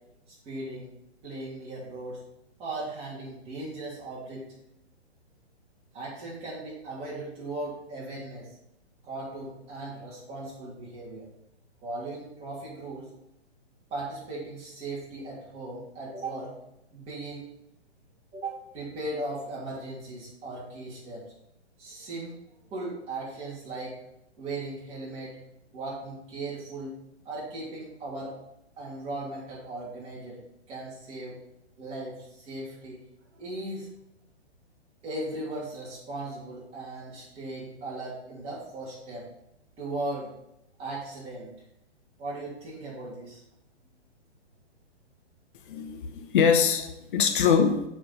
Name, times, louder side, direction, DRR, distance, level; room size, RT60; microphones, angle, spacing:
voice 1, 0.4-0.9 1.2-2.2 2.6-4.5 5.9-8.5 9.0-11.3 11.8-13.1 13.9-16.5 16.9-17.5 18.3-21.2 21.8-22.4 22.7-24.0 24.4-25.4 25.7-27.0 27.2-28.3 28.8-30.4 30.7-31.4 31.8-33.0 33.4-33.9 35.0-39.3 39.8-40.3 40.8-41.5 42.2-43.4, right 2 dB, 20° right, -7 dB, 3.0 m, -37 dB
voice 2, 45.7-47.8, left 6 dB, 50° left, 6 dB, 0.9 m, -23 dB
6.9 x 4.9 x 5.1 m, 0.83 s
hypercardioid pair, 150°, 34 cm